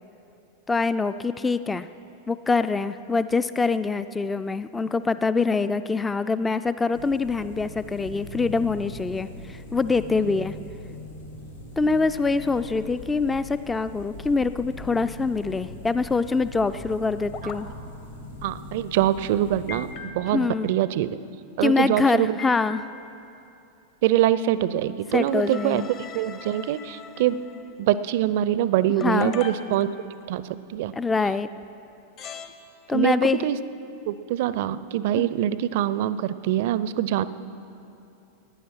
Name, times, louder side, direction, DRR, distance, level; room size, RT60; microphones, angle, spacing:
voice 1, 0.7-1.9 2.3-10.5 11.8-17.7 20.3-20.7 21.6-22.9 25.1-25.9 29.0-29.4 30.9-31.5 32.9-33.4 35.1-35.3, left 4 dB, 10° left, 13 dB, 0.3 m, -24 dB
sound 1, 6.9-19.9, left 1 dB, 80° left, 2.8 m, -41 dB
sound 2, 17.3-17.6 19.7-20.5 22.4-23.2 25.0-27.7 29.0-30.3 31.6-31.7 32.2-32.5, left 6 dB, 40° left, 1.0 m, -40 dB
voice 2, 18.4-21.2 21.6-22.4 24.0-25.8 26.1-27.4 27.8-29.9 30.3-30.4 30.7-30.9 32.9-33.6 34.1-37.3, right 12 dB, 50° right, 16 dB, 0.4 m, -24 dB
15.5 x 10.0 x 6.0 m, 2.7 s
figure-of-eight pair, 90°, 0 cm